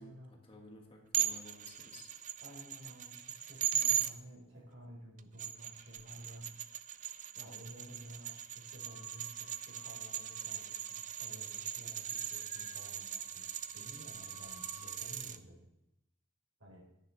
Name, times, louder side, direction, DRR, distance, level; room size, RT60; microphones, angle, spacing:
voice 1, 0.0-2.1, left 1 dB, 25° left, 1 dB, 1.6 m, -54 dB
sound 1, 1.1-4.1 5.2-15.4, right 11 dB, 40° right, 0.5 m, -39 dB
voice 2, 2.4-6.5 7.3-13.5 13.7-15.6 16.6-16.9, equal, 85° right, -2 dB, 4.5 m, -53 dB
Wind instrument woodwind instrument, 8.8-11.7 12.0-15.0, left 5 dB, 80° left, 1.9 m, -60 dB
11.0 x 9.6 x 3.4 m, 0.86 s
head